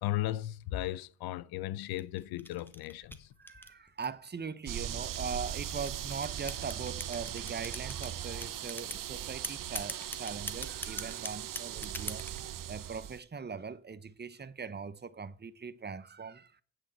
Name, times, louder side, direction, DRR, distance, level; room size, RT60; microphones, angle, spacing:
voice 1, 0.0-3.3, left 14 dB, 85° left, 0.6 m, -36 dB
sound 1, 1.8-4.3 5.0-8.1 8.4-9.0 9.4-12.4, left 1 dB, 5° left, 1.4 m, -41 dB
voice 2, 3.4-12.3 12.7-16.5, right 5 dB, 30° right, 0.9 m, -41 dB
sound 2, 4.7-13.2, right 11 dB, 60° right, 0.8 m, -39 dB
8.9 x 6.3 x 7.9 m
supercardioid pair, 60°, 36 cm